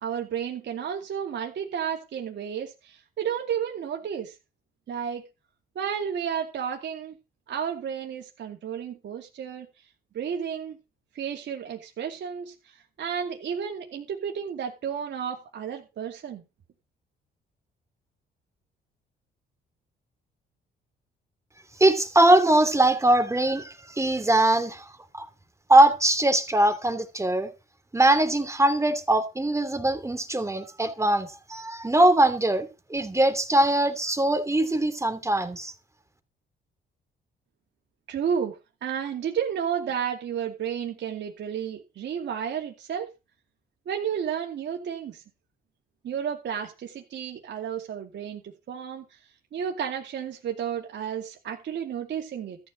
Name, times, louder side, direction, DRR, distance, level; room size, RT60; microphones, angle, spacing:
voice 1, 0.0-4.4 4.9-5.2 5.8-7.1 7.5-9.7 10.1-10.8 11.1-16.4 38.1-43.1 43.9-45.2 46.0-49.2 49.5-52.6, right 8 dB, 65° right, 2.6 m, -32 dB
voice 2, 21.8-25.3 25.7-27.5 27.9-35.7, right 1 dB, 15° right, 3.0 m, -22 dB
13.5 x 5.7 x 8.6 m
cardioid pair, 90°, 20 cm